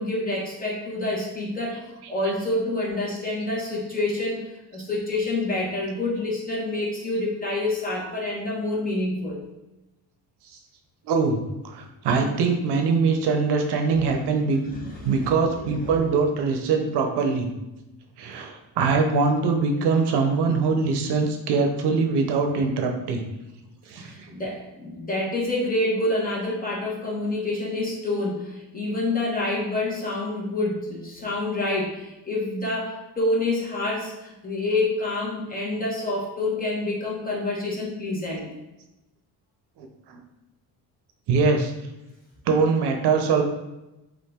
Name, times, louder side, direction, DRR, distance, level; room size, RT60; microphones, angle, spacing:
voice 1, 0.0-9.4 14.7-16.0 23.9-38.5, left 2 dB, 20° left, -4 dB, 1.1 m, -27 dB
voice 2, 11.0-14.6 15.0-17.5 18.2-23.2 23.8-24.3 39.8-40.2 41.3-41.7 42.5-43.4, right 4 dB, 70° right, 4 dB, 0.7 m, -23 dB
5.4 x 2.6 x 3.6 m, 0.98 s
cardioid pair, 160°, 41 cm